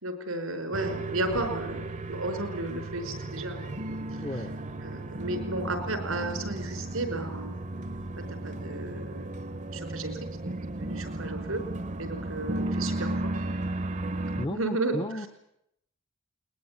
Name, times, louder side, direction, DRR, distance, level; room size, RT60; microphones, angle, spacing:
voice 1, 0.0-3.8 4.8-7.5 8.1-9.3 9.7-10.5 10.8-11.6 12.0-13.3 14.5-15.0, right 2 dB, 90° right, 8 dB, 4.9 m, -33 dB
sound 1, 0.7-14.5, right 2 dB, 40° right, 1.1 m, -34 dB
voice 2, 4.2-4.6 14.4-15.3, left 1 dB, 25° left, 9 dB, 1.0 m, -34 dB
21.0 x 20.5 x 9.7 m, 0.79 s
head